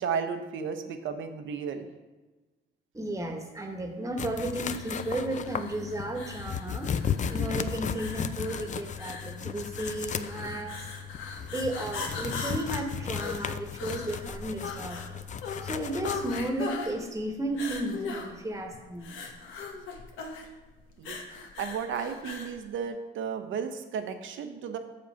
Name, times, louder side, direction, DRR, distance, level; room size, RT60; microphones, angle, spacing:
voice 1, 0.0-1.9 21.0-24.8, right 6 dB, 75° right, 7 dB, 0.8 m, -34 dB
voice 2, 2.9-6.9 7.3-10.9 11.4-15.0 15.6-19.2, right 1 dB, 15° right, 4 dB, 1.2 m, -34 dB
sound 1, 4.2-16.5, left 7 dB, 40° left, 0.4 m, -35 dB
sound 2, 4.7-22.6, left 5 dB, 90° left, 1.1 m, -40 dB
7.0 x 5.2 x 5.7 m, 1.2 s
cardioid pair, 90°, 20 cm